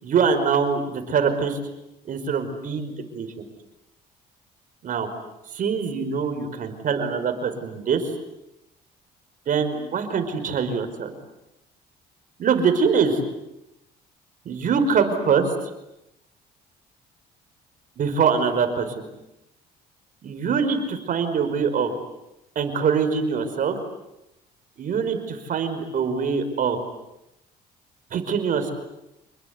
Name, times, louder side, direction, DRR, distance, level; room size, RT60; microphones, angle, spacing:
voice 1, 0.0-1.6 2.1-3.3 4.8-5.1 5.5-8.1 9.5-11.1 12.4-13.2 14.5-15.5 18.0-18.9 20.2-21.9 22.6-23.8 24.8-26.8 28.1-28.7, right 6 dB, 55° right, 8 dB, 5.3 m, -23 dB
28.5 x 20.5 x 9.7 m, 0.89 s
cardioid pair, 110°, 17 cm